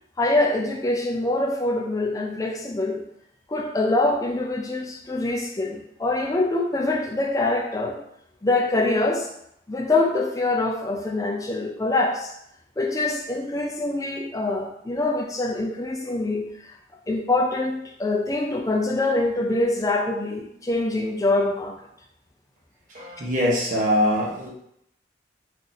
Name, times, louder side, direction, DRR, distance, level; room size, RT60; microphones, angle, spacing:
voice 1, 0.2-3.0 3.5-8.0 8.4-9.3 9.7-12.3 12.8-16.7 17.1-21.8, left 2 dB, 20° left, 1 dB, 0.4 m, -24 dB
voice 2, 22.9-24.5, equal, 45° right, -4 dB, 0.8 m, -23 dB
2.7 x 2.5 x 3.9 m, 0.74 s
head